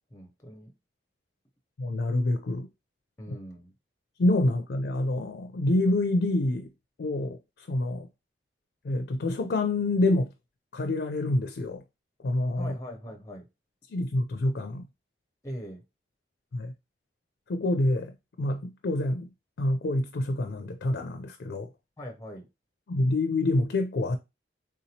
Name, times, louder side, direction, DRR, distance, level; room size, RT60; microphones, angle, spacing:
voice 1, 0.1-0.7 3.2-3.7 12.6-13.5 15.4-15.8 22.0-22.5, equal, 15° left, 0.5 m, -41 dB
voice 2, 1.8-2.7 3.3-3.4 4.2-6.7 7.0-8.1 8.8-10.3 10.7-11.8 12.2-12.7 13.9-14.8 16.5-16.7 17.5-19.3 19.6-21.7 22.9-24.2, left 2 dB, 70° left, 0.4 m, -27 dB
3.5 x 2.9 x 2.7 m
head